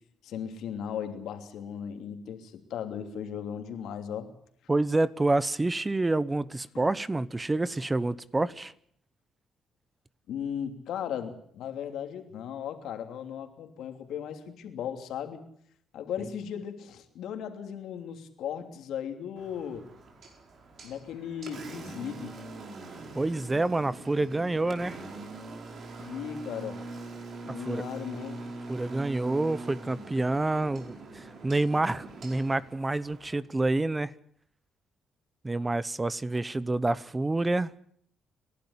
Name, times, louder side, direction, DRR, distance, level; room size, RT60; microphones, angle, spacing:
voice 1, 0.2-4.3 6.7-6.8 10.3-15.4 15.9-19.9 20.8-22.3 26.0-26.8 27.4-28.4, left 8 dB, 80° left, 3.0 m, -37 dB
voice 2, 4.7-8.7 16.2-16.3 23.2-25.0 27.5-27.8 28.7-34.1 35.4-37.7, right 2 dB, 20° right, 0.8 m, -28 dB
Engine, 19.4-33.4, right 3 dB, 55° right, 4.7 m, -43 dB
28.5 x 12.0 x 9.7 m
cardioid pair, 90°, 0 cm